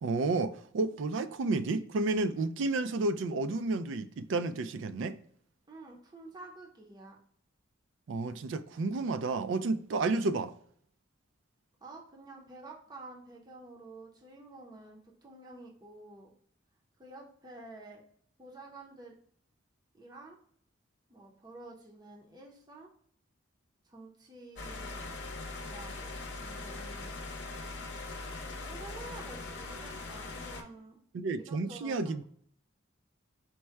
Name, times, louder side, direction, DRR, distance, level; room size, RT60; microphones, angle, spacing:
voice 1, 0.0-5.2 8.1-10.5 31.1-32.2, right 3 dB, 65° right, 0.3 m, -31 dB
voice 2, 5.7-7.2 11.8-16.3 17.0-18.0 18.4-19.2 19.9-20.4 21.1-22.9 23.8-25.1 25.6-26.1 26.4-27.2 28.6-31.0 31.3-32.2, right 2 dB, 20° right, 0.6 m, -50 dB
sound 1, 24.6-30.6, left 3 dB, 55° left, 0.7 m, -41 dB
4.5 x 2.1 x 4.3 m
head